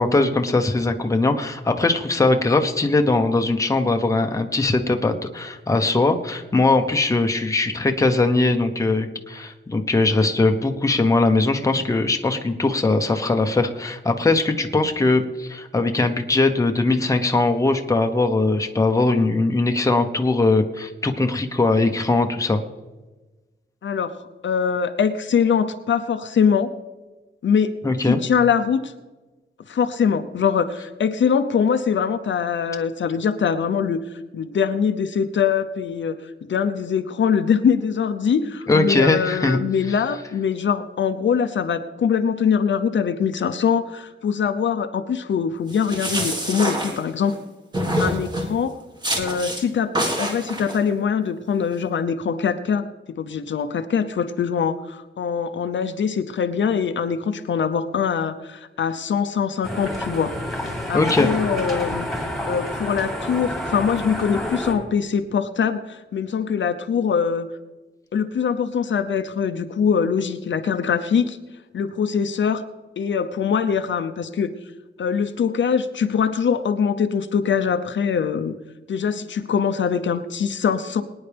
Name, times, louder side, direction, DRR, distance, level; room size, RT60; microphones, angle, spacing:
voice 1, 0.0-22.6 27.8-28.2 38.7-39.6 60.9-61.3, left 2 dB, 15° left, 5 dB, 0.9 m, -20 dB
voice 2, 23.8-24.2 24.4-26.7 27.4-27.7 28.1-28.9 29.7-34.0 34.3-47.4 48.0-48.7 49.2-49.9 50.2-52.8 53.2-60.3 60.9-62.1 62.5-67.5 68.1-71.4 71.7-72.6 73.0-74.5 75.0-78.5 78.9-81.0, left 7 dB, 65° left, 8 dB, 0.8 m, -23 dB
sound 1, 45.7-47.4 47.7-48.5 49.0-49.6 49.9-50.8, right 1 dB, 20° right, 1.7 m, -26 dB
sound 2, 59.6-64.7, left 1 dB, ahead, 2.3 m, -29 dB
22.5 x 9.8 x 3.5 m, 1.2 s
wide cardioid pair, 175°, 20 cm